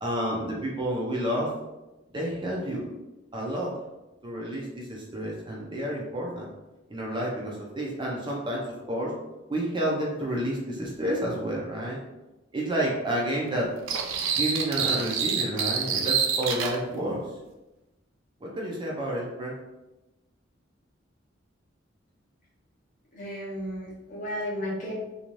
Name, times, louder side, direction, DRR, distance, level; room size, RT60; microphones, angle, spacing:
voice 1, 0.0-1.5 2.1-2.9 3.3-3.7 4.2-6.5 6.9-9.1 9.5-12.0 12.5-13.7 14.3-17.2 18.4-19.5, right 1 dB, 25° right, -3 dB, 0.4 m, -30 dB
sound 1, 13.9-16.8, right 6 dB, 90° right, 0.4 m, -27 dB
voice 2, 23.1-24.9, equal, 40° left, -4 dB, 0.8 m, -33 dB
2.5 x 2.3 x 3.0 m, 1.0 s
head